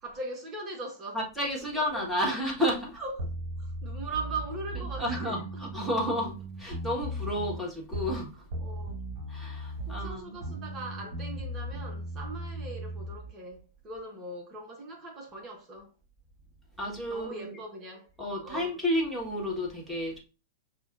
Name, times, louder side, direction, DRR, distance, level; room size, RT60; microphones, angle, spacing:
voice 1, 0.0-1.2 1.9-2.2 3.0-3.3 3.6-5.7 8.6-9.0 9.9-15.9 17.1-18.1 18.4-18.7, right 2 dB, 25° right, 1.0 m, -40 dB
voice 2, 1.1-3.0 5.0-8.4 9.3-10.3 16.8-17.6 18.2-20.2, equal, ahead, 1.6 m, -31 dB
sound 1, 3.2-8.2 8.5-13.3, right 1 dB, 50° right, 1.8 m, -37 dB
6.1 x 2.4 x 2.6 m
figure-of-eight pair, 100°, 0 cm